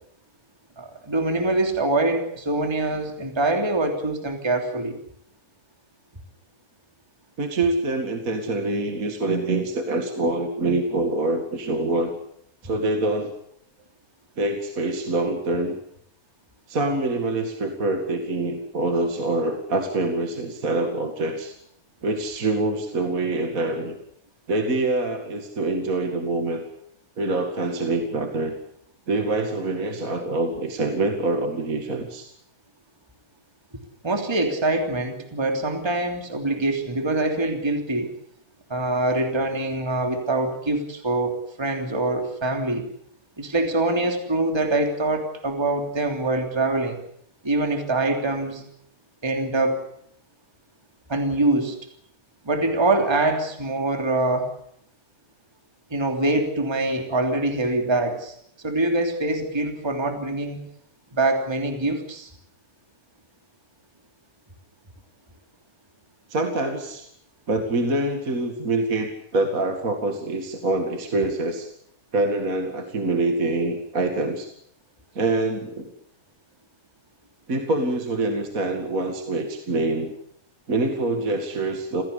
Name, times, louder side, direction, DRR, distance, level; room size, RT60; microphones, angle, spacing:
voice 1, 0.8-5.0 34.0-38.1 38.7-42.9 43.4-47.0 47.4-48.6 49.2-49.8 51.1-51.8 52.4-54.5 55.9-60.6 61.1-62.3, right 2 dB, 10° right, 4 dB, 2.9 m, -24 dB
voice 2, 7.4-12.1 12.6-13.3 14.4-15.8 16.7-21.6 22.0-24.0 24.5-26.6 27.2-28.5 29.1-32.3 66.3-67.1 67.5-71.7 72.1-74.5 75.1-75.9 77.5-80.1 80.7-82.0, right 2 dB, 30° right, 5 dB, 2.2 m, -25 dB
27.0 x 17.0 x 8.4 m, 0.68 s
omnidirectional pair, 3.5 m